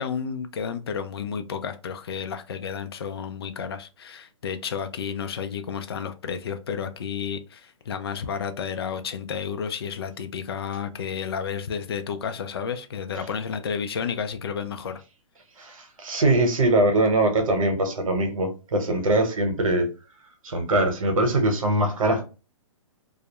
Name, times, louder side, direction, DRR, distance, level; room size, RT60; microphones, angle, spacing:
voice 1, 0.0-15.0, left 7 dB, 50° left, 0.4 m, -31 dB
voice 2, 15.6-19.9 20.4-22.2, right 2 dB, 85° right, 0.9 m, -22 dB
2.3 x 2.0 x 2.8 m
hypercardioid pair, 180°, 17 cm